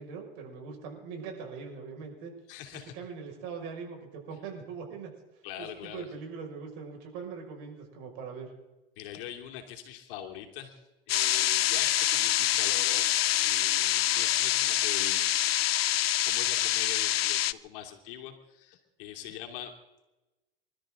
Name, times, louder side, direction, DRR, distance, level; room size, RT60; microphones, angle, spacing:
voice 1, 0.0-2.3 2.9-5.1 5.6-8.5, right 5 dB, 60° right, 2 dB, 6.0 m, -41 dB
voice 2, 2.5-2.9 5.4-6.1 9.0-13.1 13.4-15.2 15.8-19.7, left 11 dB, 65° left, 3 dB, 3.0 m, -43 dB
sound 1, 11.1-17.5, left 13 dB, 90° left, 0.6 m, -26 dB
26.5 x 13.0 x 3.9 m, 1.1 s
hypercardioid pair, 105°, 29 cm